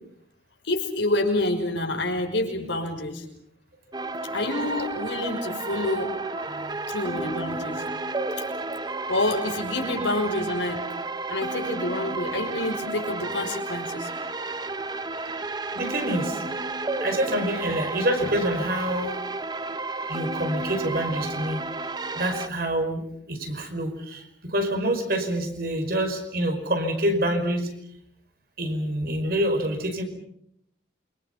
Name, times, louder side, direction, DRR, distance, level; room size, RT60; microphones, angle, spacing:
voice 1, 0.6-3.2 4.3-6.2 6.9-7.8 8.2-8.4 9.1-10.8 11.3-14.1, left 2 dB, 85° left, 4 dB, 5.8 m, -28 dB
sound 1, 3.9-22.5, right 3 dB, 20° right, 0.9 m, -32 dB
voice 2, 6.4-6.8 8.3-8.4 9.7-9.8 15.7-16.4 17.0-19.1 20.1-21.6 22.1-27.7 28.6-30.0, right 1 dB, 55° right, 6 dB, 5.3 m, -27 dB
28.5 x 25.5 x 5.8 m, 0.73 s
head